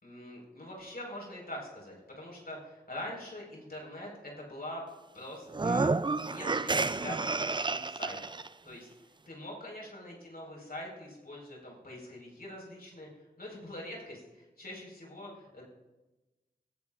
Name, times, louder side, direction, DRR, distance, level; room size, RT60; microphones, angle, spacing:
voice 1, 0.0-4.8 5.1-5.9 6.2-8.2 8.6-8.9 9.3-13.1 13.4-15.7, left 1 dB, 60° left, -2 dB, 4.7 m, -44 dB
sound 1, 5.5-8.5, right 3 dB, 25° right, 0.4 m, -30 dB
18.0 x 14.5 x 2.5 m, 1.1 s
wide cardioid pair, 65°, 18 cm